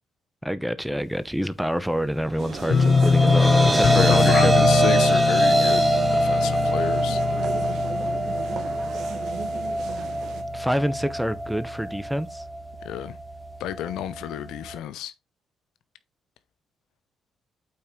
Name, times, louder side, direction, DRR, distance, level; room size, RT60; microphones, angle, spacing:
voice 1, 0.4-4.5 10.5-12.4, equal, ahead, 0.8 m, -27 dB
sound 1, 2.4-14.8, right 1 dB, 20° right, 1.6 m, -24 dB
sound 2, 2.4-10.4, right 8 dB, 75° right, 1.5 m, -37 dB
sound 3, 2.7-9.6 9.9-10.4 10.8-10.9, left 6 dB, 55° left, 1.1 m, -23 dB
voice 2, 3.4-5.8 6.1-7.2 12.8-13.1 13.6-15.1, left 12 dB, 90° left, 0.7 m, -31 dB
8.7 x 4.5 x 3.7 m
cardioid pair, 90°, 0 cm